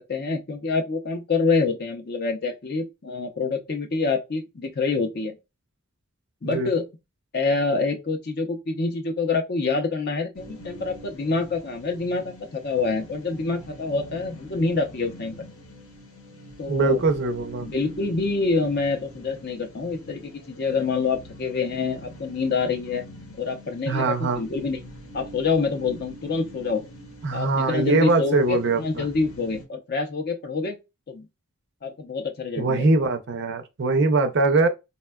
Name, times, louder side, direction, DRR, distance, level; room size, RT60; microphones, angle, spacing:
voice 1, 0.0-5.4 6.4-6.8 7.3-12.2 12.5-15.3 16.6-17.0 17.6-23.0 23.4-24.8 25.1-26.8 27.3-30.8 31.1-31.3 31.8-32.9, left 4 dB, 45° left, 0.5 m, -26 dB
sound 1, 10.3-29.7, equal, 70° left, 0.9 m, -44 dB
voice 2, 16.7-17.7 23.9-24.4 27.2-29.1 32.6-34.7, right 3 dB, 50° right, 0.4 m, -22 dB
4.0 x 2.2 x 2.2 m
head